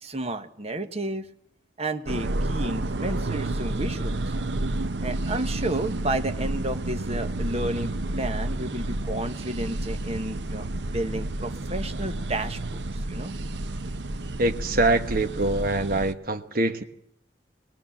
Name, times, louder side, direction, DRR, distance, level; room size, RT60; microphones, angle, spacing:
voice 1, 0.0-1.3 1.8-4.3 5.0-10.7 10.9-13.3, right 1 dB, 35° right, 7 dB, 1.4 m, -31 dB
sound 1, 2.1-16.1, right 2 dB, 80° right, 0.8 m, -30 dB
voice 2, 14.4-16.8, right 2 dB, 55° right, 6 dB, 1.2 m, -24 dB
22.0 x 20.0 x 7.3 m, 0.71 s
head